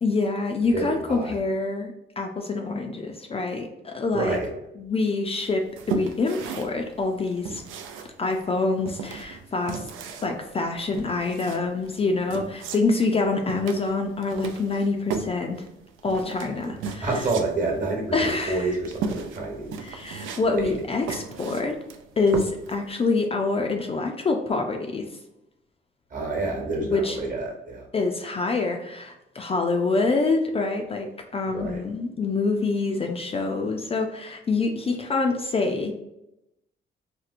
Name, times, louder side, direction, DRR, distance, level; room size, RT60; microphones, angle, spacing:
voice 1, 0.0-4.4 4.8-7.6 8.2-9.8 10.2-15.6 16.0-17.1 18.1-18.7 19.8-21.8 22.2-25.1 26.8-27.2 27.9-31.1 31.3-35.9, left 3 dB, 30° left, 3 dB, 0.4 m, -26 dB
voice 2, 0.7-1.3 4.1-4.5 17.0-19.7 20.5-20.8 26.1-27.8 31.5-31.8, right 2 dB, 40° right, 0 dB, 1.1 m, -28 dB
sound 1, 5.4-22.9, right 5 dB, 85° right, 0.4 m, -36 dB
4.2 x 2.1 x 2.5 m, 0.87 s
cardioid pair, 90°, 20 cm